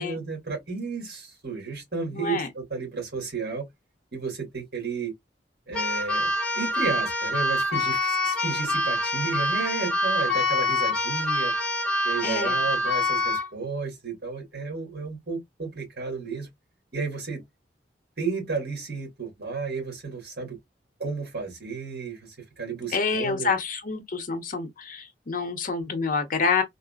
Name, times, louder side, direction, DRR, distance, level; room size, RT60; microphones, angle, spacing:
voice 1, 0.0-3.7 4.1-5.1 5.7-11.5 12.0-16.5 16.9-17.4 18.2-20.6 21.0-23.5, right 4 dB, 60° right, 2.0 m, -33 dB
voice 2, 2.1-2.5 12.2-12.7 22.9-26.6, left 4 dB, 50° left, 0.8 m, -27 dB
Keyboard (musical), 5.7-13.5, left 2 dB, 5° left, 0.9 m, -26 dB
3.8 x 2.1 x 2.4 m
head